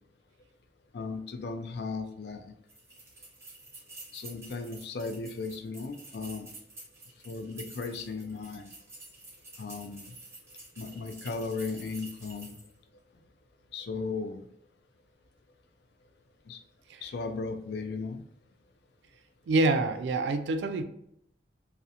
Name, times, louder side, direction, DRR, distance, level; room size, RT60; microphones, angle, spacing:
voice 1, 0.9-2.5 4.1-6.5 7.2-8.7 9.6-10.1 10.8-12.6 13.7-14.5 16.5-16.6 17.0-18.2, left 4 dB, 70° left, 6 dB, 0.3 m, -36 dB
sound 1, 2.7-12.8, right 2 dB, 15° right, 0.7 m, -49 dB
voice 2, 19.5-20.8, right 2 dB, 85° right, 8 dB, 0.3 m, -26 dB
2.7 x 2.0 x 2.4 m, 0.74 s
head